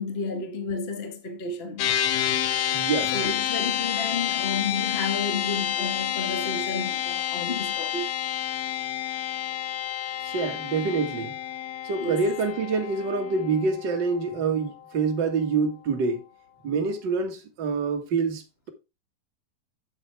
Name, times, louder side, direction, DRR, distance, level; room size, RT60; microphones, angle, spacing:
voice 1, 0.0-2.0 3.1-8.1 12.0-12.2, left 4 dB, 70° left, 0.5 m, -31 dB
sound 1, 1.8-15.3, left 10 dB, 90° left, 1.5 m, -29 dB
voice 2, 2.7-3.1 10.2-11.3 11.8-16.2 16.6-18.4, right 4 dB, 40° right, 1.7 m, -26 dB
8.4 x 8.2 x 3.3 m
omnidirectional pair, 4.3 m